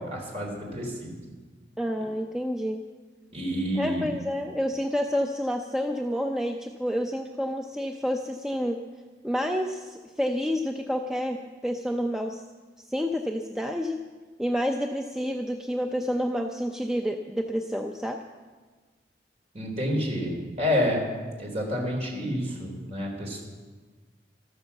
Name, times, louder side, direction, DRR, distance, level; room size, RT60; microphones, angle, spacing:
voice 1, 0.1-1.1 3.3-4.1 19.5-21.0 21.4-23.4, equal, 35° right, -1 dB, 3.8 m, -29 dB
voice 2, 1.8-2.8 3.7-8.8 9.2-12.4 12.9-14.0 14.4-18.2, equal, 5° right, 3 dB, 0.5 m, -29 dB
13.5 x 12.5 x 7.1 m, 1.4 s
head